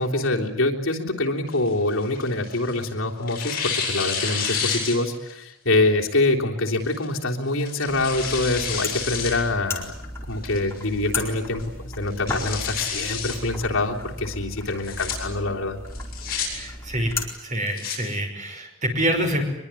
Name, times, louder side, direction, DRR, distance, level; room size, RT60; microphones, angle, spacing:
voice 1, 0.0-10.0 10.3-11.6 12.0-15.8, left 2 dB, 70° left, 0 dB, 3.4 m, -25 dB
Tearing, 1.5-2.8 3.3-5.3 5.7-5.8 6.7-7.0 7.6-9.4 9.8-9.9 10.4-10.8 11.2-11.3 11.6-11.7 12.1-13.4 14.7-15.1 15.9-16.5 17.5-18.0, left 6 dB, 45° left, 7.8 m, -29 dB
sound 1, 7.9-17.3, left 2 dB, 10° left, 4.4 m, -35 dB
voice 2, 16.5-17.1 17.4-19.4, right 1 dB, 35° right, 4 dB, 5.7 m, -26 dB
24.0 x 22.5 x 9.6 m, 0.84 s
head